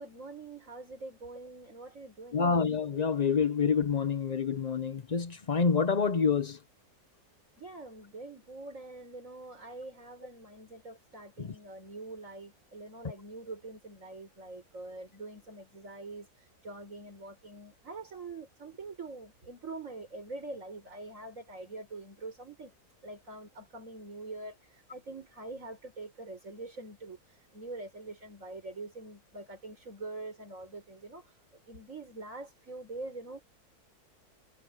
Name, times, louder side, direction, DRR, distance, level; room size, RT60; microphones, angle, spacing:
voice 1, 0.0-2.4 7.6-22.7 23.0-31.4 31.7-33.4, right 2 dB, 50° right, 5.6 m, -44 dB
voice 2, 2.3-6.6 11.4-11.5, left 5 dB, 40° left, 0.6 m, -27 dB
omnidirectional pair, 1.7 m